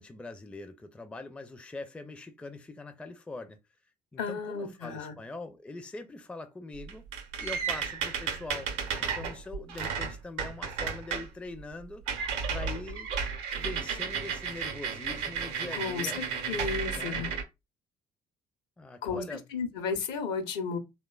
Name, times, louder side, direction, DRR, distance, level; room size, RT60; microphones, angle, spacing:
voice 1, 0.0-3.6 4.1-7.1 7.4-12.1 12.5-13.1 13.6-16.2 16.9-17.2 18.8-19.5, left 3 dB, 5° left, 0.4 m, -42 dB
voice 2, 4.2-5.2 15.7-17.3 19.0-19.2 19.5-20.8, left 5 dB, 65° left, 0.7 m, -33 dB
sound 1, 6.7-11.3 11.6-11.8 12.1-17.4, right 6 dB, 70° right, 0.6 m, -33 dB
3.0 x 2.2 x 2.2 m
figure-of-eight pair, 50°, 20 cm